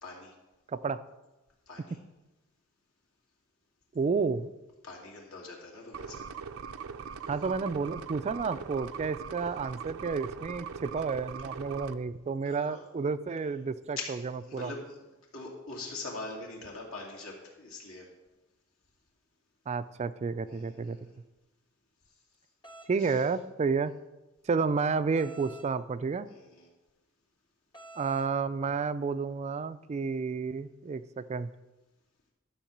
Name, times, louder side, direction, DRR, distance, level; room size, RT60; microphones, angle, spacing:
voice 1, 0.0-0.3 1.7-2.0 4.8-6.3 11.4-11.5 12.4-12.8 14.0-14.1 14.4-15.0 15.3-18.1 20.5-21.2 23.0-23.2 26.3-26.7, left 3 dB, 75° left, -2 dB, 2.7 m, -43 dB
voice 2, 3.9-4.5 7.3-14.0 14.5-14.7 19.7-21.0 22.9-23.9 24.5-26.3 28.0-31.5, right 5 dB, 30° right, 13 dB, 0.3 m, -31 dB
sound 1, 5.9-11.9, right 6 dB, 80° right, 0.5 m, -41 dB
sound 2, 22.6-22.9 25.1-25.7 27.7-28.3, right 2 dB, 20° left, 1.0 m, -49 dB
12.0 x 4.6 x 7.2 m, 1.1 s
head